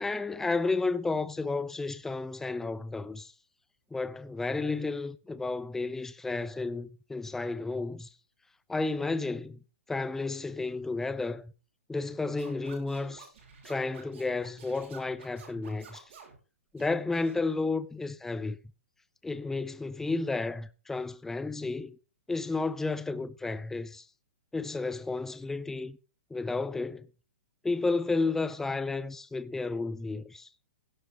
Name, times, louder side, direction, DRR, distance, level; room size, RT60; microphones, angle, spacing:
voice 1, 0.0-3.3 3.9-8.1 8.7-9.6 9.9-11.5 11.9-13.3 13.6-16.0 16.7-18.6 19.2-22.0 22.3-24.0 24.5-26.0 26.3-27.1 27.6-30.5, left 3 dB, 5° left, 0.6 m, -32 dB
Scratching (performance technique), 12.4-16.4 16.8-17.4, right 6 dB, 60° right, 6.1 m, -51 dB
16.5 x 7.8 x 3.6 m
hypercardioid pair, 150°, 7 cm